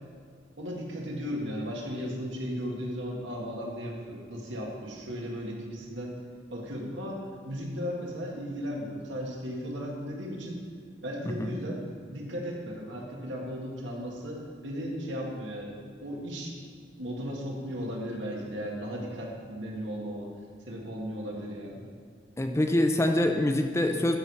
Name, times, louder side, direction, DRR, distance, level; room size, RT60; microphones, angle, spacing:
voice 1, 0.6-6.2 6.5-10.6 11.0-11.8 12.1-16.5 17.0-20.3 20.7-21.8, equal, 80° right, -1 dB, 1.9 m, -36 dB
voice 2, 22.4-24.2, left 1 dB, 15° left, 4 dB, 0.5 m, -25 dB
13.0 x 4.8 x 5.6 m, 2.1 s
head